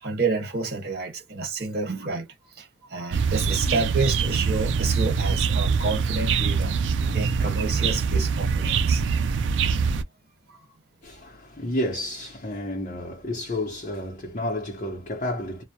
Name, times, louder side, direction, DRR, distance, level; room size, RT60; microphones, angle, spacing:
voice 1, 0.0-2.3 2.6-6.7 7.1-9.1, right 3 dB, 60° right, 1.1 m, -29 dB
sound 1, 3.1-10.0, right 5 dB, 80° right, 0.3 m, -24 dB
voice 2, 11.0-15.6, left 1 dB, 45° left, 0.7 m, -31 dB
2.1 x 2.1 x 2.8 m
head